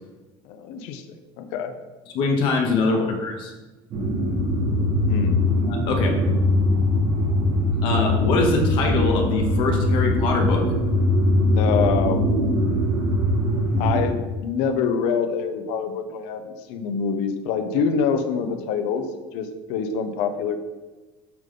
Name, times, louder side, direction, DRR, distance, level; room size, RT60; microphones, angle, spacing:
voice 1, 0.4-1.0 1.4-1.7 2.9-3.1 5.1-5.4 11.5-12.2 13.8-19.1 19.3-20.6, left 6 dB, 85° left, 8 dB, 0.7 m, -25 dB
voice 2, 2.1-3.5 5.7-6.2 7.8-10.7, left 3 dB, 50° left, 2 dB, 0.9 m, -23 dB
sound 1, 3.9-14.0, left 1 dB, 45° right, 1.5 m, -21 dB
8.8 x 3.8 x 3.7 m, 1.2 s
cardioid pair, 175°, 11 cm